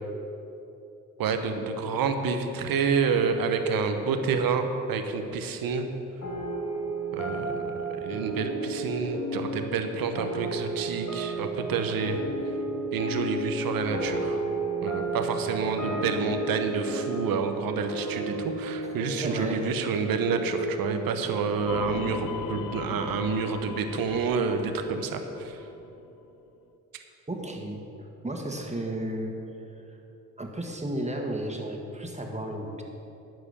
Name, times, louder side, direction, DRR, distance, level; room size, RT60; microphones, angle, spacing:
voice 1, 1.2-5.9 7.1-12.2 12.9-14.4 14.8-25.6, right 5 dB, 75° right, 6 dB, 1.0 m, -28 dB
sound 1, 6.2-23.0, right 2 dB, 55° left, 2.4 m, -33 dB
voice 2, 19.2-19.7 27.3-29.3 30.4-32.8, right 1 dB, 20° right, 2 dB, 2.0 m, -33 dB
sound 2, 21.7-26.1, left 7 dB, 75° left, 0.6 m, -38 dB
11.5 x 4.9 x 8.4 m, 3.0 s
supercardioid pair, 45°, 35 cm